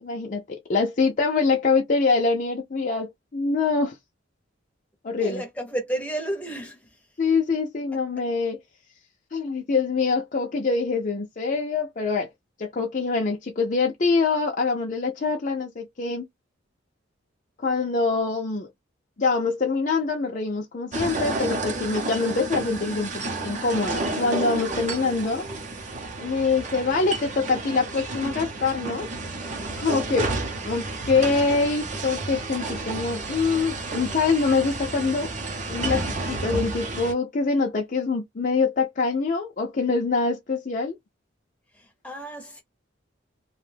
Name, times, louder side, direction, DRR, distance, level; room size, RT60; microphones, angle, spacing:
voice 1, 0.0-3.9 5.0-5.4 7.2-8.6 9.3-12.3 12.6-16.3 17.6-18.7 19.2-25.4 26.2-29.1 29.8-30.3 30.6-35.3 35.7-41.0, left 4 dB, 40° left, 0.5 m, -24 dB
voice 2, 5.2-6.9 41.7-42.6, right 1 dB, 5° left, 0.7 m, -32 dB
sound 1, 20.9-37.1, right 2 dB, 35° right, 0.6 m, -31 dB
2.5 x 2.2 x 3.2 m
head